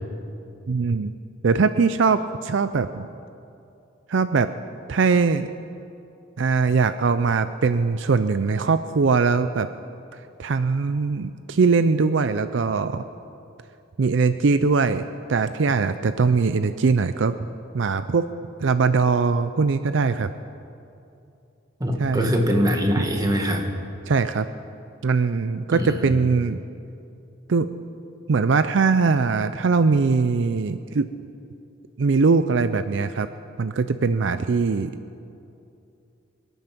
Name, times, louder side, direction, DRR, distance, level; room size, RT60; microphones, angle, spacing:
voice 1, 0.7-1.1 1.4-3.1 4.1-4.5 4.9-5.5 6.4-9.7 10.4-13.0 14.0-17.3 17.7-18.3 18.6-20.3 22.0-22.3 23.0-23.1 24.1-24.5 25.0-26.6 27.5-27.7 28.3-31.1 32.0-33.3 33.6-34.9, right 4 dB, 65° right, 11 dB, 0.5 m, -21 dB
voice 2, 21.8-23.6 25.7-26.0, equal, 20° right, 2 dB, 1.6 m, -22 dB
25.5 x 9.2 x 6.0 m, 2.6 s
head